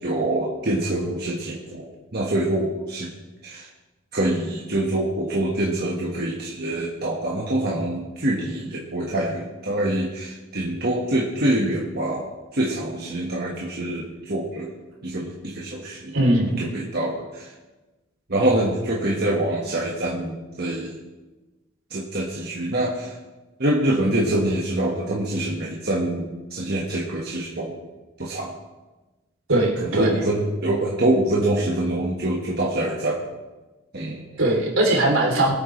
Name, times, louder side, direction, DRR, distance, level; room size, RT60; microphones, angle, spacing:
voice 1, 0.0-3.1 3.4-3.7 4.1-14.7 15.0-16.1 16.6-17.5 18.3-21.0 21.9-23.2 23.6-27.7 28.2-28.5 29.8-33.2 33.9-34.2, right 1 dB, 50° right, -3 dB, 1.5 m, -25 dB
voice 2, 16.1-16.6 29.5-30.1 34.4-35.5, right 1 dB, 75° right, -1 dB, 3.1 m, -20 dB
21.5 x 9.0 x 3.2 m, 1.2 s
head